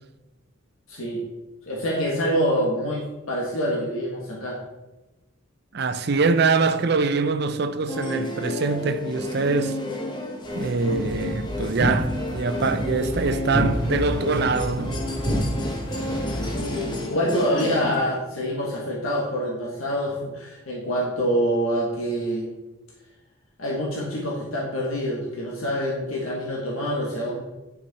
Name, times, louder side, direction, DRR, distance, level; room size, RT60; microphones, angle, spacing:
voice 1, 0.9-1.2 1.7-4.6 16.5-22.5 23.6-27.4, equal, 85° left, 1.6 m, -26 dB
voice 2, 5.7-9.8 10.5-15.0, right 4 dB, 50° right, 0.6 m, -24 dB
sound 1, 7.9-18.0, left 1 dB, 20° left, 0.9 m, -31 dB
sound 2, 10.5-16.6, equal, 65° left, 3.3 m, -29 dB
9.7 x 6.0 x 4.2 m
head